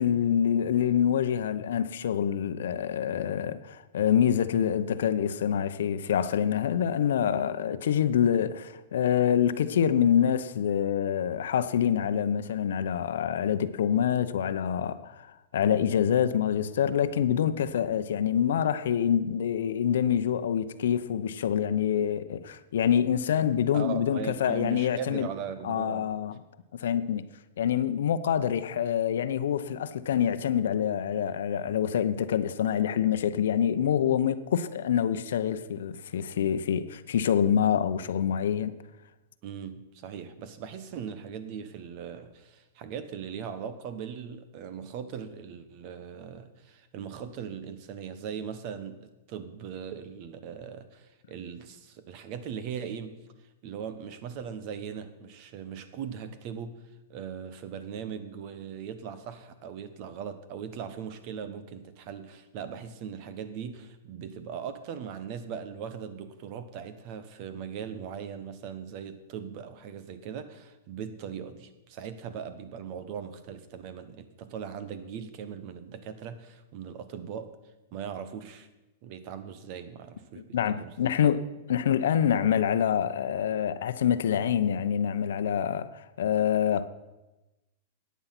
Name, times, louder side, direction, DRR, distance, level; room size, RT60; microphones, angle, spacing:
voice 1, 0.0-15.3 15.5-25.3 25.6-26.3 26.7-27.3 27.6-38.8 80.4-81.4 81.7-86.9, left 9 dB, 80° left, 0.8 m, -26 dB
voice 2, 23.7-26.1 39.4-53.2 53.6-56.8 57.1-77.5 77.9-78.7 79.0-81.4, right 7 dB, 40° right, 1.3 m, -39 dB
14.0 x 9.5 x 6.0 m
supercardioid pair, 150°, 0 cm